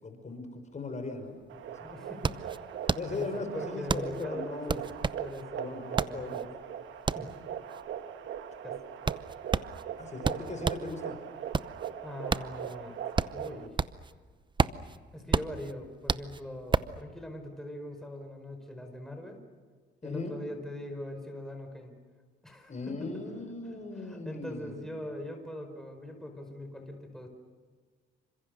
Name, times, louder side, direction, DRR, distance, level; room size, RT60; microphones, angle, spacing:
voice 1, 0.0-1.4 1.7-1.9 3.0-4.8 5.6-6.4 10.0-11.2 20.0-20.4 22.7-24.9, left 3 dB, 35° left, 6 dB, 5.6 m, -38 dB
sound 1, 1.3-1.4 1.6-10.9 11.3-14.1 14.4-17.0, right 4 dB, 25° right, 0.7 m, -31 dB
sound 2, 1.5-13.7, right 9 dB, 75° right, 1.8 m, -40 dB
voice 2, 1.8-2.8 3.1-6.5 7.1-7.4 8.6-8.8 12.0-13.0 13.3-13.7 15.1-19.4 20.0-21.9 22.4-22.7 24.0-27.3, left 1 dB, ahead, 4 dB, 5.1 m, -42 dB
28.5 x 26.0 x 6.6 m, 1.5 s
cardioid pair, 90°, 20 cm